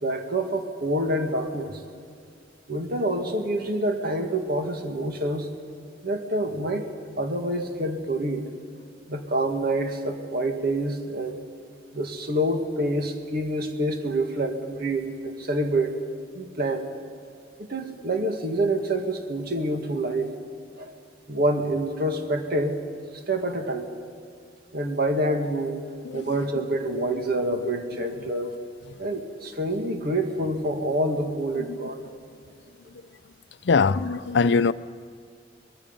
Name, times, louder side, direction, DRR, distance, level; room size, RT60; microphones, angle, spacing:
voice 1, 0.0-1.7 2.7-5.5 6.0-6.8 7.2-8.4 9.1-11.4 11.9-15.9 16.3-16.9 17.6-20.3 20.8-20.9 21.3-22.8 23.3-23.9 24.7-25.8 26.1-28.5 29.0-31.9, right 1 dB, 55° right, 1.9 m, -27 dB
voice 2, 26.0-26.4 28.2-28.3 31.5-32.1 33.6-34.7, left 4 dB, 65° left, 0.5 m, -23 dB
23.0 x 21.0 x 5.4 m
head